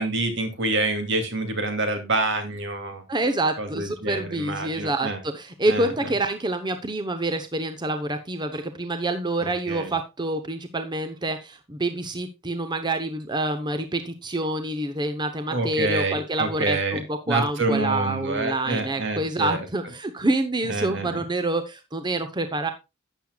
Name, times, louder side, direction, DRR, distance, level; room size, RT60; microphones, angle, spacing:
voice 1, 0.0-3.0 3.6-5.2 5.7-5.9 9.4-9.9 15.5-19.6 20.6-21.2, right 2 dB, 65° right, 6 dB, 2.5 m, -27 dB
voice 2, 3.1-22.7, right 2 dB, 20° right, 7 dB, 0.9 m, -27 dB
12.0 x 8.9 x 2.3 m, 0.24 s
head